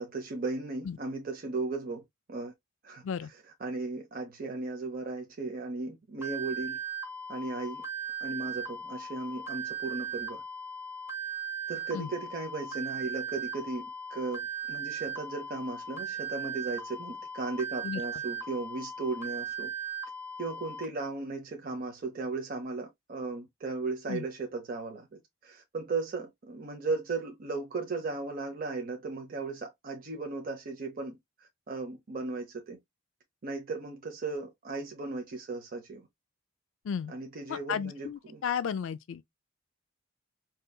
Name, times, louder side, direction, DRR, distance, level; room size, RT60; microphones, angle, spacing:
voice 1, 0.0-2.0 2.3-2.5 2.8-3.0 3.6-6.8 7.3-7.8 8.2-10.4 11.7-19.7 20.4-32.8 33.4-36.1 37.1-38.4, right 3 dB, 45° right, 0.6 m, -36 dB
sound 1, 6.2-20.8, right 5 dB, 10° right, 0.9 m, -38 dB
voice 2, 37.5-39.2, left 7 dB, 70° left, 0.4 m, -33 dB
3.8 x 2.7 x 2.2 m
head